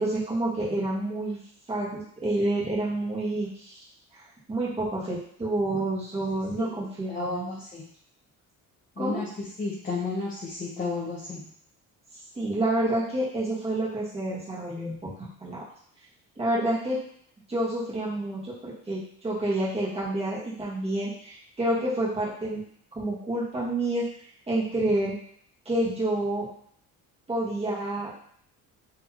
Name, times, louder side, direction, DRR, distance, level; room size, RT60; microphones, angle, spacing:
voice 1, 0.0-1.4 1.7-3.8 4.5-7.6 9.0-9.2 12.4-15.6 16.4-17.0 17.5-22.6 22.9-24.0 24.5-25.2 25.7-26.5 27.3-28.1, right 1 dB, 15° right, -7 dB, 1.7 m, -28 dB
voice 2, 6.6-7.8 9.0-11.5, left 3 dB, 25° left, -5 dB, 1.0 m, -33 dB
4.0 x 3.3 x 3.1 m, 0.63 s
cardioid pair, 110°, 35 cm